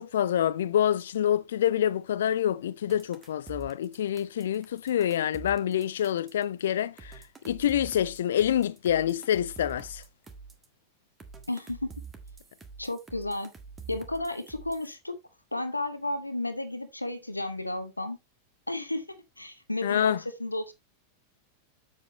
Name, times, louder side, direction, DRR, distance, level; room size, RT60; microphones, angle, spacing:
voice 1, 0.0-7.2 7.4-10.0 19.8-20.2, left 10 dB, 60° left, 0.5 m, -27 dB
sound 1, 2.9-6.4 7.0-10.7 11.2-14.9, right 6 dB, 15° right, 1.6 m, -46 dB
voice 2, 11.5-11.9 12.8-13.5 13.9-15.1 15.5-18.2 18.7-20.7, left 2 dB, 85° left, 0.9 m, -33 dB
7.8 x 7.3 x 3.0 m
figure-of-eight pair, 90°, 0 cm